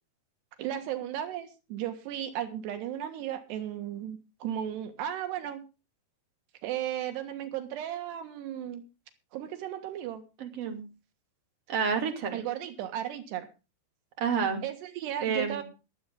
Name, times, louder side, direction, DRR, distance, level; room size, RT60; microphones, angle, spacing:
voice 1, 0.6-5.6 6.6-8.8 9.3-10.2 12.3-13.5 14.6-15.6, right 11 dB, 90° right, 7 dB, 3.7 m, -35 dB
voice 2, 10.4-10.9 11.7-12.4 14.2-14.6 15.2-15.6, right 6 dB, 40° right, 3 dB, 3.4 m, -29 dB
22.0 x 8.2 x 3.7 m, 0.30 s
omnidirectional pair, 4.7 m